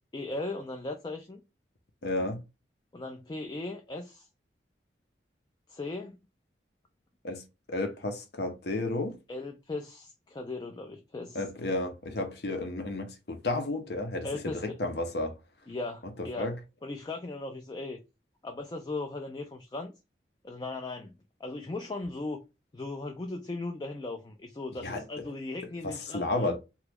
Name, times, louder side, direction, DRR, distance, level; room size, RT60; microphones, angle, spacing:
voice 1, 0.1-1.4 2.9-4.3 5.7-6.2 9.3-11.4 14.2-14.6 15.7-16.5 16.8-18.0 18.4-19.9 20.4-21.1 21.4-22.4 22.7-26.6, left 2 dB, 25° left, 0.3 m, -37 dB
voice 2, 2.0-2.4 7.2-7.4 7.7-9.2 11.3-15.3 16.4-16.6 24.8-25.0 25.8-26.6, left 2 dB, 60° left, 0.7 m, -32 dB
3.0 x 2.3 x 3.4 m
head